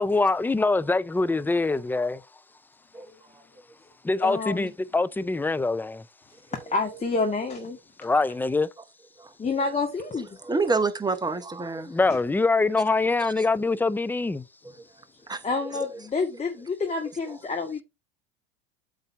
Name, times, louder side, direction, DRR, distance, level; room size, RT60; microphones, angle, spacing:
voice 1, 0.0-2.2 4.0-6.0 8.0-8.7 11.9-14.4, left 3 dB, 5° left, 0.4 m, -24 dB
voice 2, 4.2-4.7 6.5-7.8 9.4-10.3 15.4-17.8, left 4 dB, 20° left, 2.1 m, -28 dB
voice 3, 10.4-11.9 13.2-13.3 15.3-15.4, right 3 dB, 15° right, 1.1 m, -27 dB
8.5 x 4.0 x 4.6 m
hypercardioid pair, 90°, 30 cm